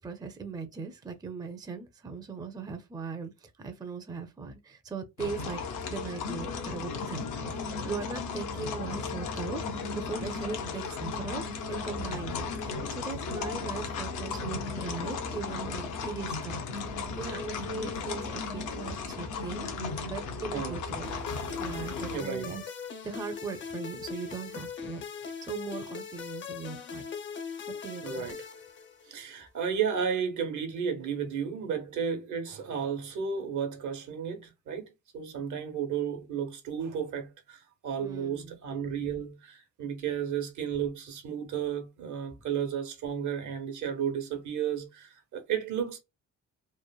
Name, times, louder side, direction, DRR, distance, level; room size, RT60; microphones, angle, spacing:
voice 1, 0.0-5.6 5.9-19.7 20.0-21.2 21.6-22.7 23.0-27.0 27.7-28.4 38.0-38.6, right 4 dB, 15° right, 0.4 m, -39 dB
sound 1, 5.2-22.2, left 4 dB, 85° left, 0.7 m, -35 dB
sound 2, 21.0-29.3, left 6 dB, 40° left, 0.5 m, -40 dB
voice 2, 22.1-22.5 28.0-28.5 29.0-34.9 35.1-46.0, right 7 dB, 75° right, 0.9 m, -33 dB
3.1 x 2.0 x 2.2 m
cardioid pair, 90°, 30 cm